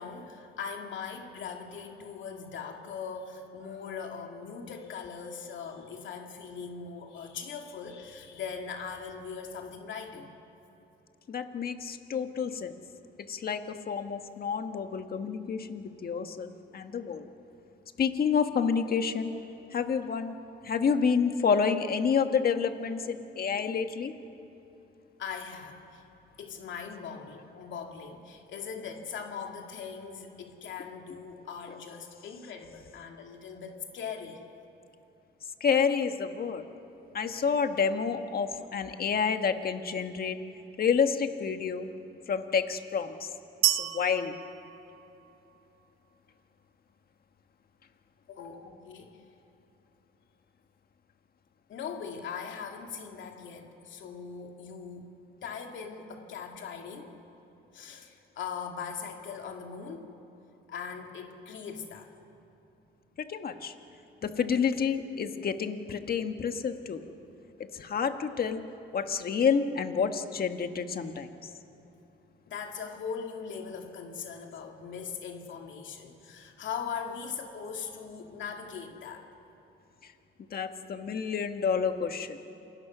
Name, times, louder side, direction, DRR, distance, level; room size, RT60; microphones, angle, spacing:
voice 1, 0.0-10.3 25.2-26.0 26.4-34.4 48.3-49.2 51.7-55.1 55.4-57.1 57.7-60.1 60.7-62.1 72.5-79.3, left 6 dB, 70° left, 2 dB, 2.6 m, -40 dB
voice 2, 11.3-12.7 13.3-17.3 18.0-19.3 19.7-20.3 20.6-24.1 35.6-36.6 37.1-40.4 40.8-41.9 42.3-43.3 43.7-44.4 63.2-63.7 64.2-67.0 67.7-68.6 68.9-71.3 80.5-82.4, left 6 dB, 50° left, 7 dB, 1.6 m, -29 dB
sound 1, 43.6-45.6, right 16 dB, 85° right, 0.7 m, -30 dB
27.5 x 20.5 x 6.2 m, 3.0 s
cardioid pair, 90°, 20 cm